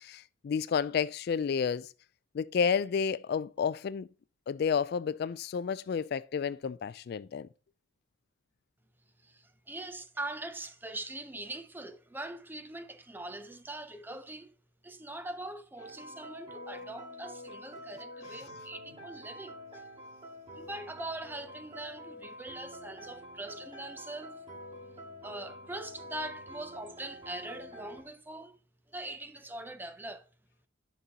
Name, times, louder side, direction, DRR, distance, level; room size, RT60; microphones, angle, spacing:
voice 1, 0.0-1.9 2.3-4.1 4.5-7.5, left 6 dB, 55° left, 0.3 m, -31 dB
voice 2, 9.2-14.6 14.8-19.8 20.5-24.4 25.2-28.6 28.9-30.3, right 2 dB, 10° right, 0.5 m, -42 dB
sound 1, 15.8-28.0, equal, 25° right, 2.3 m, -47 dB
11.0 x 5.3 x 2.9 m
head